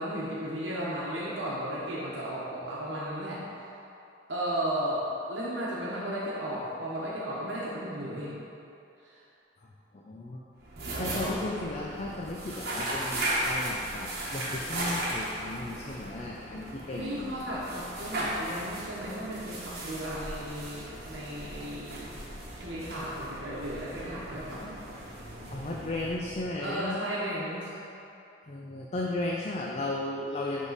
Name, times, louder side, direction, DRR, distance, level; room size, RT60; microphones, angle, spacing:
voice 1, 0.0-3.6 4.3-8.3 9.0-9.2 10.9-11.3 16.9-22.1 22.6-24.7 26.6-27.7, right 1 dB, 70° right, -7 dB, 1.1 m, -35 dB
voice 2, 9.9-10.4 10.9-17.4 25.5-27.0 28.5-30.7, left 2 dB, 35° left, -2 dB, 0.4 m, -35 dB
sound 1, 10.6-26.7, right 1 dB, 55° right, 1.4 m, -36 dB
11.0 x 3.7 x 4.0 m, 2.8 s
head